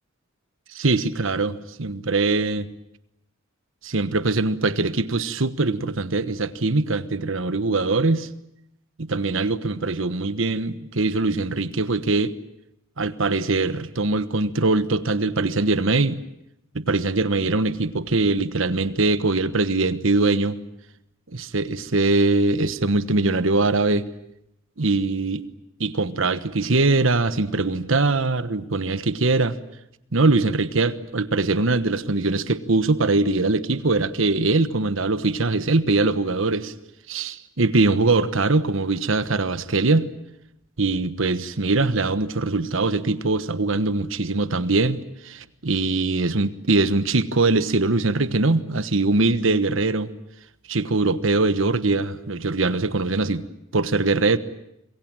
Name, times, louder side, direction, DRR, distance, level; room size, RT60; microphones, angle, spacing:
voice 1, 0.7-2.7 3.8-8.3 9.0-12.3 13.0-16.2 16.7-20.6 21.3-24.0 24.8-25.4 25.8-29.6 30.1-36.7 37.1-40.1 40.8-50.1 50.7-53.4 53.7-54.4, right 3 dB, 70° right, 13 dB, 1.3 m, -22 dB
26.5 x 23.0 x 8.9 m, 0.81 s
head